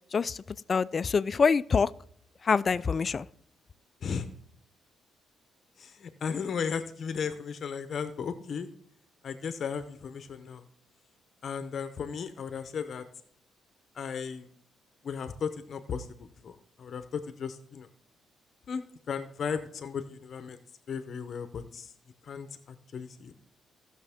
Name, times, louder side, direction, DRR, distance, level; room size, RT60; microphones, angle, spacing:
voice 1, 0.1-0.4 0.7-1.9 2.4-3.3, left 5 dB, 40° left, 0.3 m, -25 dB
voice 2, 5.8-8.7 9.2-10.6 11.4-13.0 14.0-14.5 15.0-16.1 16.4-17.0 17.4-17.9 18.7-18.8 19.1-20.6 20.9-21.9 22.3-23.3, left 6 dB, 55° left, 0.8 m, -35 dB
17.0 x 6.3 x 3.5 m
cardioid pair, 90°, 0 cm